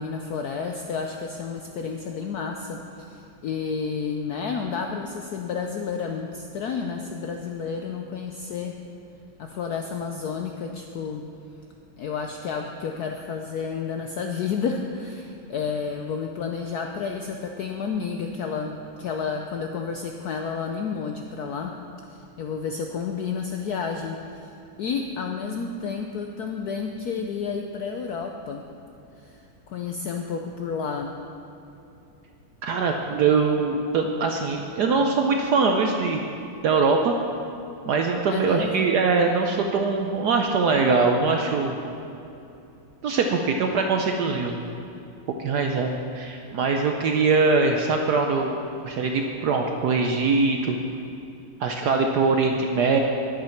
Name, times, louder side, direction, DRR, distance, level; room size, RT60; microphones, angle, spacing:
voice 1, 0.0-8.7 9.4-11.2 12.0-21.7 22.1-24.5 24.8-28.7 29.2-31.1 38.3-38.9, left 5 dB, 75° left, 3 dB, 0.9 m, -31 dB
voice 2, 32.6-36.2 36.6-37.1 37.9-41.8 43.0-44.6 45.4-48.6 48.8-50.8 51.6-53.0, right 4 dB, 70° right, 3 dB, 1.0 m, -22 dB
10.5 x 9.2 x 5.8 m, 2.7 s
omnidirectional pair, 2.3 m